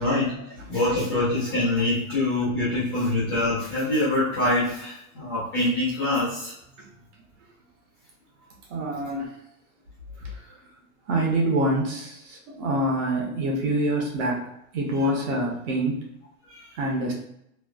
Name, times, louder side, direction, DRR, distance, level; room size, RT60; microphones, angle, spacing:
voice 1, 0.0-6.5 16.5-16.7, left 2 dB, 20° left, -11 dB, 0.4 m, -25 dB
voice 2, 8.7-9.3 10.2-10.3 11.1-14.4 14.7-16.0 16.7-17.1, right 1 dB, 55° right, -1 dB, 1.0 m, -25 dB
3.1 x 2.3 x 2.4 m, 0.76 s
supercardioid pair, 170°, 43 cm